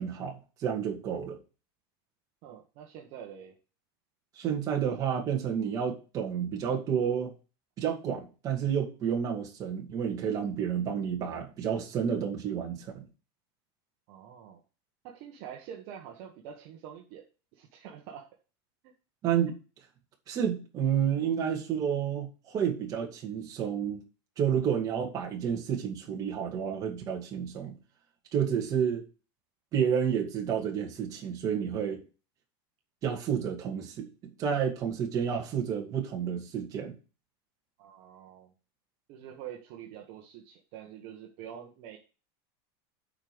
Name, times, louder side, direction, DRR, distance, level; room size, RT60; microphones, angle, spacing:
voice 1, 0.0-1.4 4.4-7.3 7.8-13.1 19.2-19.6 20.3-24.0 24.4-27.8 28.3-29.0 29.7-32.0 33.0-36.9, right 8 dB, 25° right, 2.2 m, -30 dB
voice 2, 2.4-3.6 14.1-14.6 15.0-17.2 17.5-18.3 37.8-38.5 39.1-42.0, right 9 dB, 45° right, 1.5 m, -46 dB
8.7 x 5.2 x 6.1 m
supercardioid pair, 170°, 13 cm